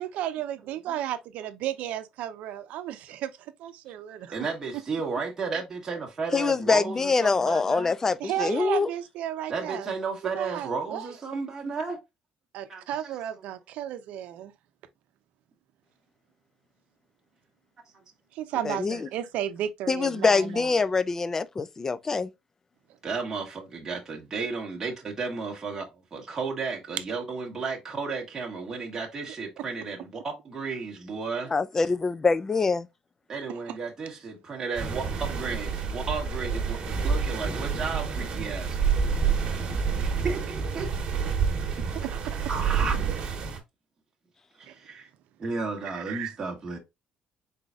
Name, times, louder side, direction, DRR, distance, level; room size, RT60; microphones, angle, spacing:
voice 1, 0.0-4.4 8.2-9.9 10.3-11.1 12.5-14.5 18.3-20.7 29.6-29.7 33.7-33.8 42.0-42.5 44.7-44.8 45.8-46.3, right 11 dB, 70° right, 0.6 m, -34 dB
voice 2, 4.3-7.9 9.5-12.0 12.7-13.2 23.0-31.5 33.3-38.9 40.0-40.9 42.5-42.9 44.6-45.1 45.4-46.8, right 4 dB, 20° right, 1.1 m, -33 dB
voice 3, 6.3-8.9 18.6-19.1 19.9-22.3 31.5-32.9, left 4 dB, 20° left, 0.3 m, -24 dB
sound 1, 34.7-43.6, right 6 dB, 40° right, 1.3 m, -28 dB
4.2 x 3.9 x 2.4 m
cardioid pair, 155°, 3 cm